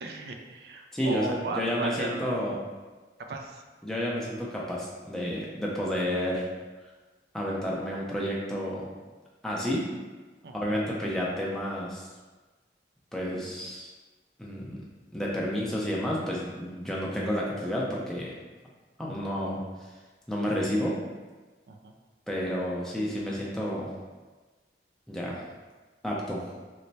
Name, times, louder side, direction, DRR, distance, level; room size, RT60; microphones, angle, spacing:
voice 1, 0.0-2.4 3.3-3.6 10.4-10.8 21.7-21.9, right 2 dB, 65° right, 4 dB, 0.4 m, -36 dB
voice 2, 0.9-2.6 3.8-6.5 7.3-8.9 9.4-9.9 10.5-12.1 13.1-13.9 14.4-14.8 15.1-18.3 19.0-19.6 20.3-21.0 22.3-23.9 25.1-25.4 26.0-26.4, equal, 5° left, -5 dB, 0.5 m, -30 dB
3.1 x 2.1 x 4.0 m, 1.3 s
head